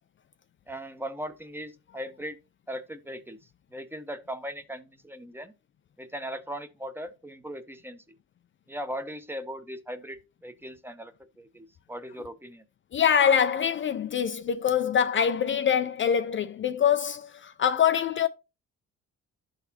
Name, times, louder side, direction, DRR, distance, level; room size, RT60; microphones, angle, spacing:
voice 1, 0.7-2.4 2.7-3.4 3.7-5.5 6.0-8.0 8.7-12.6, equal, 5° right, 0.7 m, -38 dB
voice 2, 12.9-18.3, left 8 dB, 40° left, 0.4 m, -24 dB
11.5 x 4.0 x 2.8 m
cardioid pair, 90°, 30 cm